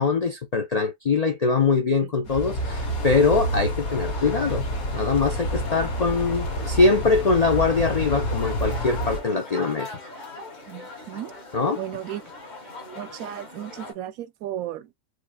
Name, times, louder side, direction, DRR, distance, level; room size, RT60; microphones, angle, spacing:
voice 1, 0.0-4.7 4.9-9.9 11.5-11.8, left 4 dB, 60° left, 0.4 m, -22 dB
sound 1, 2.2-9.2, equal, 90° left, 2.0 m, -28 dB
sound 2, 3.9-13.9, left 2 dB, 35° left, 1.4 m, -41 dB
voice 2, 10.7-11.3 11.8-12.2 12.9-14.9, right 12 dB, 80° right, 1.0 m, -35 dB
4.7 x 2.7 x 2.2 m
omnidirectional pair, 1.5 m